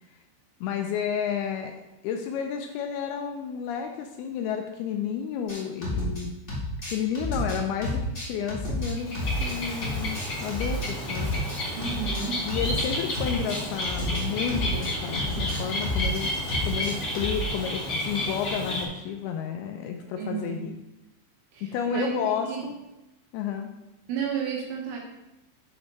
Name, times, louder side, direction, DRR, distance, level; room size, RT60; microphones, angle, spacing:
voice 1, 0.6-1.7 2.0-6.3 6.9-8.0 8.3-11.4 12.5-16.3 16.6-20.8 21.6-22.7 23.3-23.7, left 7 dB, 80° left, 4 dB, 2.4 m, -31 dB
sound 1, 5.5-6.2 6.5-9.6 9.8-12.9 13.1-17.5, left 1 dB, 40° left, 0.7 m, -31 dB
Bird, 8.8-18.8, left 1 dB, 60° left, 1.1 m, -31 dB
voice 2, 11.8-12.4 20.2-20.7 21.5-22.7 24.1-25.0, right 6 dB, 70° right, -1 dB, 2.9 m, -32 dB
7.0 x 4.9 x 5.5 m, 0.94 s
omnidirectional pair, 4.9 m